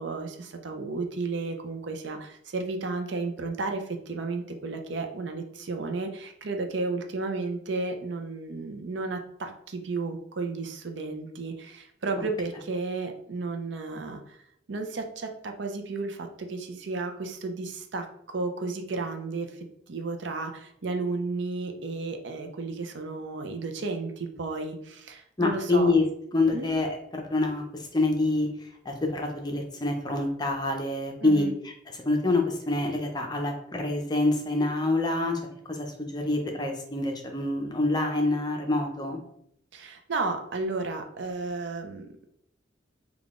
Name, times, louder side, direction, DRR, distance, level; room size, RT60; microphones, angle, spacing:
voice 1, 0.0-14.4 14.7-19.6 19.9-25.9 26.5-26.7 31.2-31.5 39.7-42.1, right 3 dB, 65° right, 5 dB, 0.6 m, -33 dB
voice 2, 25.4-26.0 26.3-35.4 35.7-39.2, left 2 dB, 20° left, 3 dB, 0.6 m, -26 dB
3.7 x 2.3 x 3.6 m, 0.72 s
head